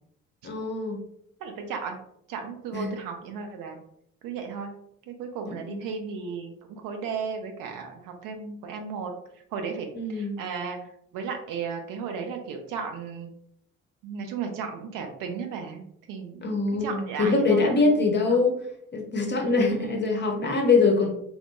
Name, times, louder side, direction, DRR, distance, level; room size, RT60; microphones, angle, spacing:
voice 1, 0.4-1.0 2.7-2.9 5.5-5.8 9.9-10.4 16.4-18.6 18.9-21.1, left 3 dB, 30° left, 2 dB, 0.6 m, -23 dB
voice 2, 1.4-2.0 2.3-3.8 4.2-4.7 5.1-9.1 9.5-10.8 11.1-13.3 14.0-16.5 16.8-18.0 18.3-18.4 19.6-20.0, right 5 dB, 55° right, 4 dB, 0.6 m, -35 dB
2.1 x 2.1 x 2.9 m, 0.72 s
figure-of-eight pair, 45°, 39 cm